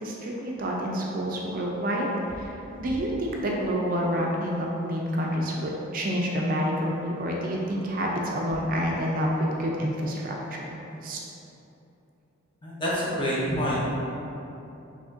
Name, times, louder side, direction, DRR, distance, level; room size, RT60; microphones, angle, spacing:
voice 1, 0.0-2.5 2.8-11.2, equal, 40° right, -2 dB, 0.4 m, -28 dB
voice 2, 12.6-13.9, equal, 25° left, -7 dB, 0.8 m, -27 dB
4.9 x 3.5 x 2.5 m, 2.9 s
head